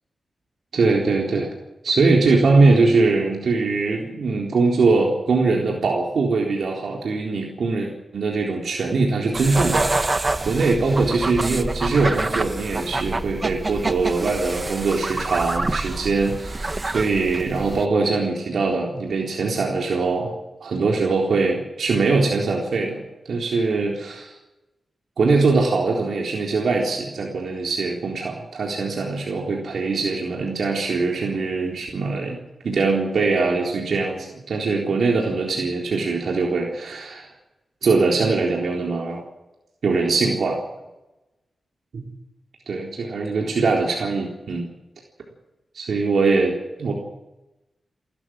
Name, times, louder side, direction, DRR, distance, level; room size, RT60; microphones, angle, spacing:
voice 1, 0.7-1.5 1.8-10.2 10.4-20.3 20.6-24.3 25.2-32.4 32.6-37.3 37.8-39.2 39.8-40.6 41.9-42.0 42.7-44.6 45.7-46.5 46.8-46.9, right 3 dB, 75° right, -1 dB, 3.9 m, -22 dB
sound 1, 9.3-17.8, right 2 dB, 25° right, 1.1 m, -27 dB
29.5 x 13.5 x 7.5 m, 1.0 s
wide cardioid pair, 135°, 0 cm